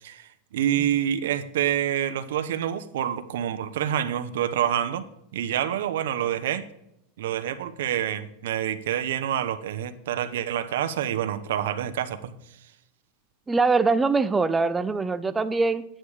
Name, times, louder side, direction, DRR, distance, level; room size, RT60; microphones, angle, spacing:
voice 1, 0.0-5.0 5.3-6.6 7.2-12.3, right 10 dB, 80° right, 10 dB, 0.9 m, -27 dB
voice 2, 13.5-15.8, right 4 dB, 10° right, 12 dB, 0.5 m, -23 dB
9.2 x 8.9 x 4.9 m, 0.82 s
supercardioid pair, 160°, 0 cm